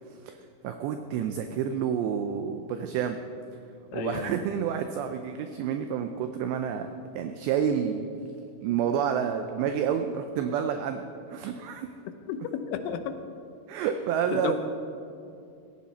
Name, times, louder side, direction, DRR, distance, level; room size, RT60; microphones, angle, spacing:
voice 1, 0.6-3.2 3.9-6.9 7.1-8.3 8.6-11.0 11.3-11.9 13.7-14.5, right 8 dB, 90° right, 7 dB, 2.4 m, -29 dB
voice 2, 3.9-4.3 12.3-13.1 14.3-14.5, left 8 dB, 80° left, 8 dB, 3.3 m, -32 dB
15.5 x 15.5 x 4.3 m, 2.5 s
omnidirectional pair, 5.8 m